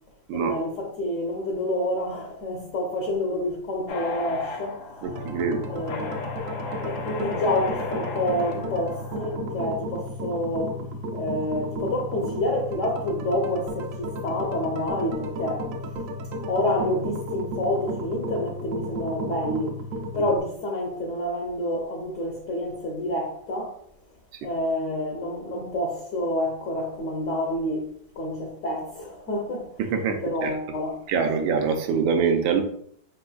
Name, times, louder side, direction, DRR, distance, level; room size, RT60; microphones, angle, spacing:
voice 1, 0.3-4.8 5.7-6.2 6.8-10.8 11.1-15.7 16.4-19.8 20.1-23.8 24.4-31.0, left 1 dB, 60° left, 0.8 m, -28 dB
sound 1, 3.9-9.4, left 3 dB, 85° left, 1.5 m, -35 dB
sound 2, 5.0-20.4, equal, 65° right, 0.8 m, -33 dB
voice 2, 5.0-5.6 29.8-30.5 31.1-32.6, right 6 dB, 85° right, 1.4 m, -24 dB
5.1 x 4.1 x 2.3 m
omnidirectional pair, 2.0 m